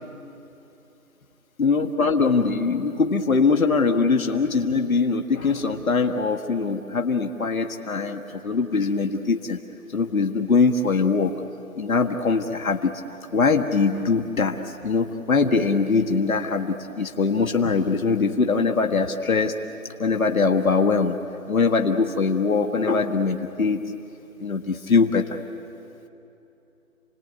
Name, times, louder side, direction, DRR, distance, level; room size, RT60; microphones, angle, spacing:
voice 1, 1.6-9.6 9.9-11.3 11.8-12.9 13.3-14.6 14.8-19.6 20.0-21.2 21.5-23.9 24.4-25.4, left 4 dB, 75° left, 4 dB, 1.7 m, -22 dB
29.0 x 20.0 x 9.4 m, 2.9 s
figure-of-eight pair, 170°, 43 cm